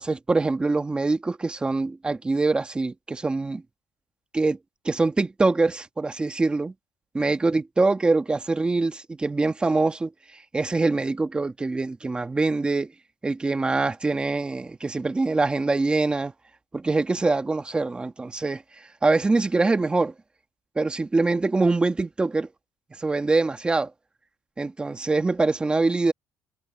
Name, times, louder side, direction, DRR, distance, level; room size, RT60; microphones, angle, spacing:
voice 1, 0.0-3.6 4.3-4.6 4.8-6.7 7.1-12.9 13.2-16.3 16.7-20.1 20.7-22.5 22.9-23.9 24.6-26.1, right 3 dB, 15° right, 1.4 m, -24 dB
cardioid pair, 135°, 6 cm